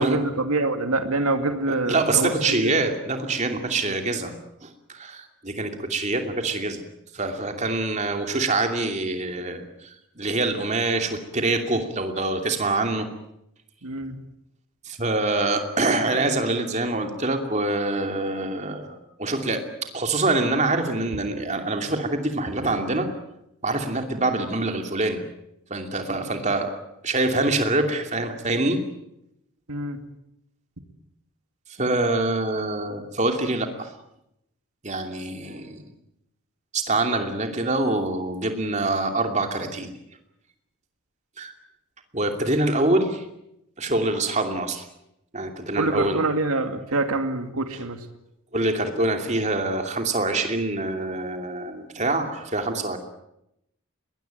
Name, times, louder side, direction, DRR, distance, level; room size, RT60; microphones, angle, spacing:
voice 1, 0.0-2.7 3.8-4.0 13.8-14.1 26.1-26.3 29.7-30.0 45.8-48.0, right 2 dB, 85° right, 8 dB, 2.3 m, -26 dB
voice 2, 1.7-6.8 7.1-13.1 14.8-23.1 23.6-25.2 25.7-26.7 27.0-28.8 31.8-33.9 34.8-35.8 36.7-39.9 41.4-41.5 42.1-43.2 43.8-44.8 45.3-46.2 47.7-47.8 48.5-53.0, right 2 dB, 30° right, 5 dB, 2.7 m, -25 dB
22.5 x 20.5 x 9.2 m, 0.82 s
head